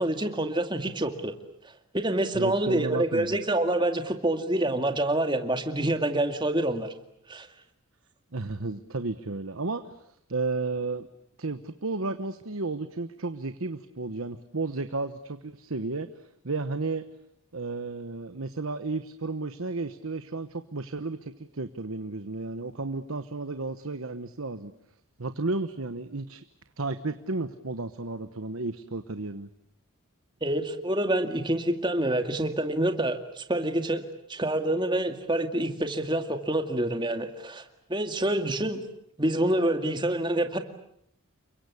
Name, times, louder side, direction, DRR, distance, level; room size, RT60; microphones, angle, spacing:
voice 1, 0.0-1.3 1.9-6.9 7.3-7.5 30.4-34.0 34.3-37.6 37.9-38.8 39.2-40.6, right 1 dB, 20° right, 6 dB, 2.2 m, -27 dB
voice 2, 2.3-3.4 8.3-11.1 11.4-17.0 17.5-24.7 25.2-26.4 26.8-29.5, right 3 dB, 75° right, 10 dB, 1.1 m, -33 dB
29.5 x 23.5 x 8.4 m, 0.73 s
head